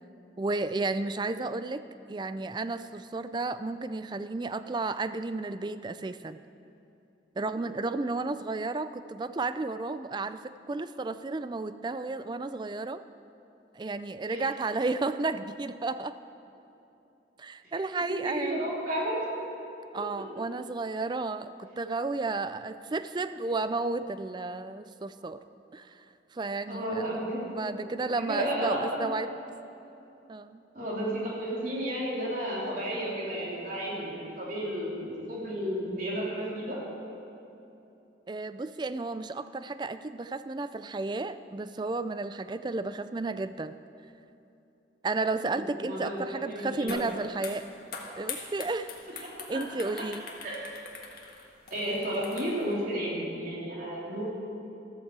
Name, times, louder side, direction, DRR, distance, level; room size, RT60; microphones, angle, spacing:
voice 1, 0.4-1.8 2.1-6.4 7.4-13.0 13.7-16.2 17.4-18.6 19.9-25.4 25.7-26.1 26.3-29.3 30.3-30.6 38.3-43.7 45.0-47.7 48.2-50.2, right 3 dB, 25° right, 12 dB, 0.4 m, -33 dB
voice 2, 17.9-19.2 26.7-27.9 28.2-29.1 30.7-36.8 45.5-46.1 46.5-47.0 49.2-49.6 50.4-50.6 51.7-54.3, right 1 dB, 50° right, -6 dB, 3.6 m, -32 dB
sound 1, 46.9-47.1 47.4-52.7, left 6 dB, 55° left, 1.7 m, -42 dB
14.0 x 14.0 x 4.7 m, 2.9 s
head